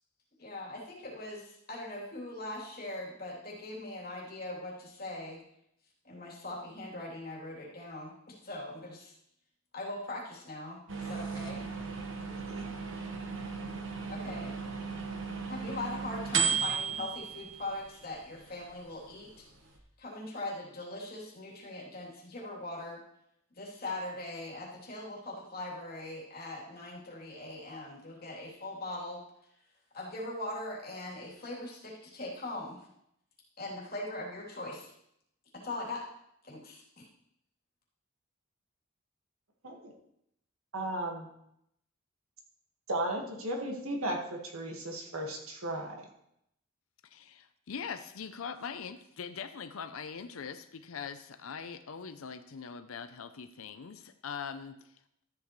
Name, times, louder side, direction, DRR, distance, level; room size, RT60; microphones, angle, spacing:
voice 1, 0.4-5.4 6.0-9.1 9.7-11.6 14.1-14.5 15.5-19.4 20.0-23.0 23.5-29.2 29.9-32.8 33.6-34.9 35.5-36.0 36.5-36.8, left 2 dB, 45° left, -4 dB, 3.1 m, -41 dB
sound 1, 10.9-19.8, right 6 dB, 65° right, 1.2 m, -36 dB
voice 2, 12.3-12.7 39.6-39.9 40.7-41.3 42.9-45.9, right 1 dB, 85° right, 1 dB, 1.8 m, -35 dB
voice 3, 47.1-54.9, left 6 dB, 80° left, 10 dB, 0.6 m, -42 dB
13.5 x 8.1 x 3.2 m, 0.76 s
head